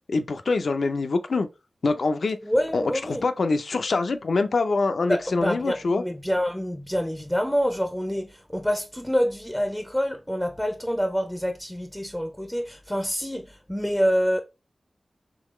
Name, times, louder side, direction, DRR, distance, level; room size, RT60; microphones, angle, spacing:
voice 1, 0.1-1.5 1.8-2.4 2.7-6.0, left 3 dB, 75° left, 0.4 m, -24 dB
voice 2, 2.4-3.2 5.1-14.4, equal, ahead, 0.5 m, -26 dB
3.8 x 3.1 x 3.0 m
wide cardioid pair, 65°, 0 cm